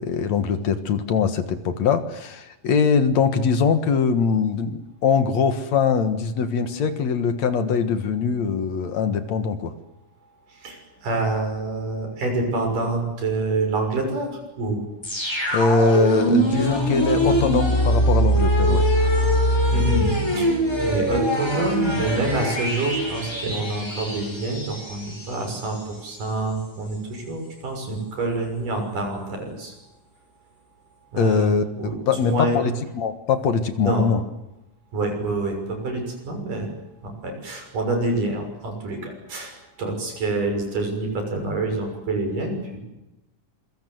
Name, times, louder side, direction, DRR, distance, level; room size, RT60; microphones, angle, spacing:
voice 1, 0.0-9.7 15.5-18.9 31.2-34.2, left 5 dB, 60° left, 10 dB, 2.7 m, -22 dB
voice 2, 10.5-14.8 19.7-20.5 20.8-29.7 31.1-32.6 33.8-34.1 34.9-36.7 37.0-42.8, right 2 dB, 85° right, 4 dB, 7.9 m, -27 dB
sound 1, 15.0-25.8 26.2-26.3, equal, 5° left, 5.7 m, -22 dB
26.5 x 23.5 x 7.9 m, 0.95 s
omnidirectional pair, 3.6 m